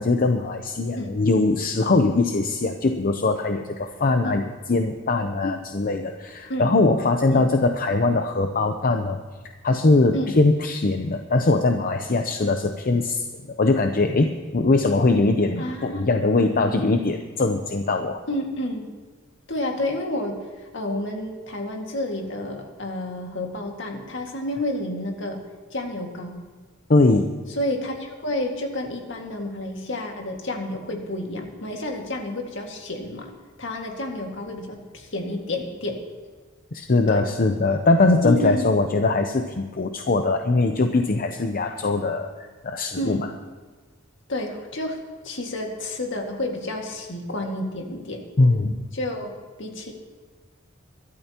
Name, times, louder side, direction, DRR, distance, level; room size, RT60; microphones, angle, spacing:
voice 1, 0.0-9.2 9.6-13.3 13.6-18.2 26.9-27.3 36.7-43.2 48.4-48.8, left 3 dB, 45° left, 6 dB, 0.7 m, -21 dB
voice 2, 15.6-16.1 18.3-18.9 19.5-25.4 25.7-26.4 27.6-33.3 33.6-36.0 37.1-37.2 38.2-38.7 43.0-43.3 44.3-45.0 45.2-48.2 48.9-49.3 49.6-49.9, left 1 dB, 65° left, 2 dB, 2.0 m, -30 dB
23.0 x 12.5 x 2.9 m, 1.4 s
head